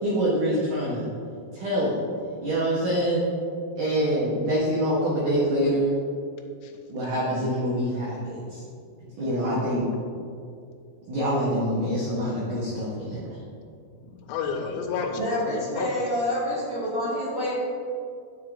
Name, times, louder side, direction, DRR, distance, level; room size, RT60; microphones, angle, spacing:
voice 1, 0.0-1.1 1.5-2.0 2.4-3.3 3.8-5.9 6.9-8.6 9.2-9.9 11.1-13.4, equal, 85° right, -6 dB, 1.8 m, -25 dB
voice 2, 14.1-16.1, left 5 dB, 90° left, 4 dB, 2.9 m, -31 dB
voice 3, 15.2-17.5, left 1 dB, 60° right, -12 dB, 1.4 m, -27 dB
9.9 x 4.7 x 2.5 m, 2.4 s
omnidirectional pair, 5.1 m